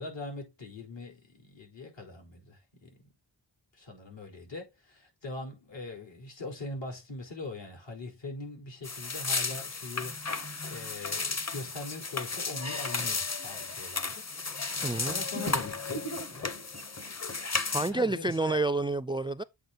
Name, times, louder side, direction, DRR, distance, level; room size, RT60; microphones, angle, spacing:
voice 1, 0.0-3.0 3.7-10.2 10.7-14.3 14.7-16.6 17.0-18.6, left 2 dB, 75° left, 4.2 m, -42 dB
sound 1, 8.8-17.9, left 4 dB, 35° left, 1.1 m, -34 dB
voice 2, 14.8-15.2 17.7-19.4, right 2 dB, 10° right, 0.3 m, -29 dB
8.2 x 4.3 x 3.9 m
wide cardioid pair, 70°, 45 cm